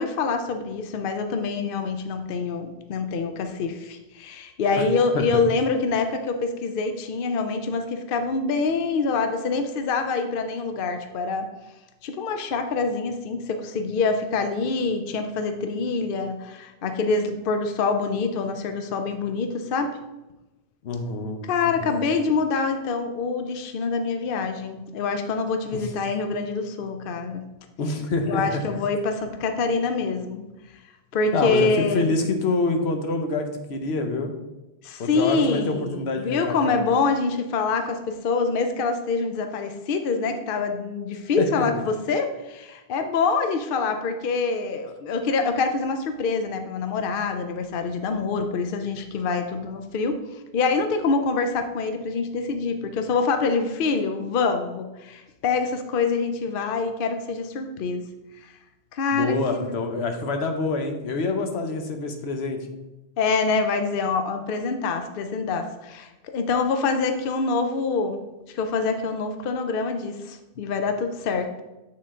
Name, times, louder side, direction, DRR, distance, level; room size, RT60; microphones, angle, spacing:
voice 1, 0.0-11.5 12.0-20.0 21.4-27.4 28.2-30.4 31.1-32.1 34.8-50.2 50.5-58.0 58.4-58.5 58.9-59.7 63.2-68.2 68.5-71.6, left 4 dB, 65° left, 7 dB, 0.8 m, -25 dB
voice 2, 20.8-22.0 25.7-25.8 27.8-28.6 31.3-34.3 35.0-36.8 41.4-41.5 59.1-62.6, left 3 dB, 90° left, 5 dB, 1.1 m, -26 dB
8.7 x 3.8 x 3.7 m, 1.0 s
omnidirectional pair, 1.1 m